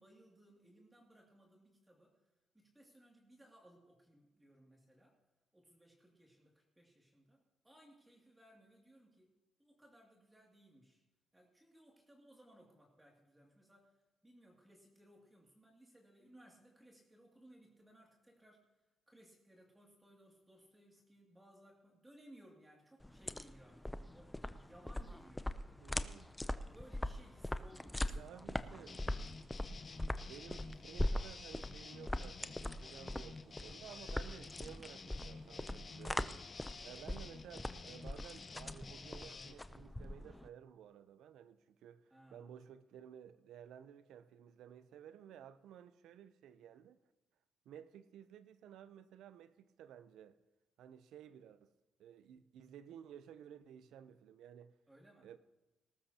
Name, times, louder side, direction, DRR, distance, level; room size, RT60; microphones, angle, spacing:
voice 1, 0.0-2.1 2.5-5.2 5.5-9.3 9.6-11.0 11.3-14.0 14.2-18.7 19.1-25.5 26.4-28.9 42.1-42.5 54.9-55.3, right 1 dB, 10° right, 2.4 m, -63 dB
sound 1, 23.0-40.5, left 1 dB, 10° left, 0.5 m, -41 dB
voice 2, 25.8-26.3 28.1-29.1 30.2-36.4 36.8-47.0 47.7-50.4 50.8-51.7 52.0-54.7 55.2-55.4, right 9 dB, 80° right, 0.6 m, -55 dB
sound 2, 28.9-39.5, left 4 dB, 40° left, 0.9 m, -51 dB
19.5 x 13.0 x 2.9 m
cardioid pair, 90°, 0 cm